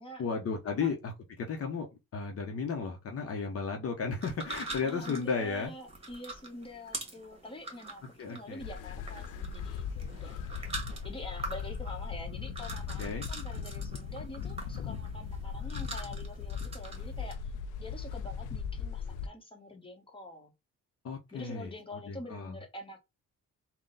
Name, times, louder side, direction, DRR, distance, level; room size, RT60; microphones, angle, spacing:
voice 1, 0.2-5.7 8.2-8.6 13.0-13.3 21.0-21.7 22.1-22.6, left 5 dB, 50° left, 0.8 m, -34 dB
sound 1, 4.2-17.3, right 2 dB, 20° right, 1.7 m, -45 dB
voice 2, 4.8-8.0 8.3-10.6 11.0-17.4 17.8-20.5 21.3-23.0, left 1 dB, 15° left, 1.2 m, -46 dB
sound 2, 8.6-19.3, left 6 dB, 90° left, 0.5 m, -38 dB
3.7 x 2.3 x 3.9 m
cardioid pair, 90°, 30 cm